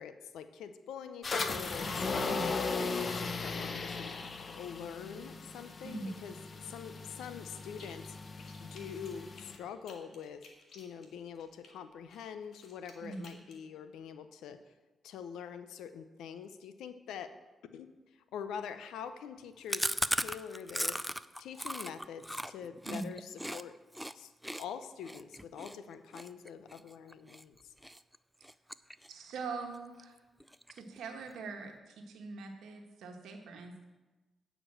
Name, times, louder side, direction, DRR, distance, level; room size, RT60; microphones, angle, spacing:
voice 1, 0.0-4.1 4.6-6.4 6.6-8.2 8.6-10.4 10.7-14.6 15.0-17.3 17.7-17.9 18.3-21.0 21.4-23.8 24.1-24.3 24.6-27.6, left 7 dB, 90° left, 11 dB, 0.5 m, -45 dB
sound 1, 1.2-9.6, left 4 dB, 50° left, 0.8 m, -37 dB
voice 2, 2.2-2.5 5.8-6.1 13.0-13.3 22.9-23.1 29.1-30.2 30.7-33.8, right 3 dB, 85° right, 4 dB, 1.2 m, -42 dB
sound 2, 7.7-8.1 8.4-11.7 12.1-13.6, left 4 dB, 70° left, 1.6 m, -57 dB
Chewing mastication, 19.7-23.6 23.9-24.1 24.4-27.4 27.8-28.2 28.4-29.3 29.6-29.7 30.0-30.1 30.4-31.0, equal, ahead, 0.4 m, -37 dB
8.8 x 5.1 x 7.5 m, 1.2 s
cardioid pair, 65°, 0 cm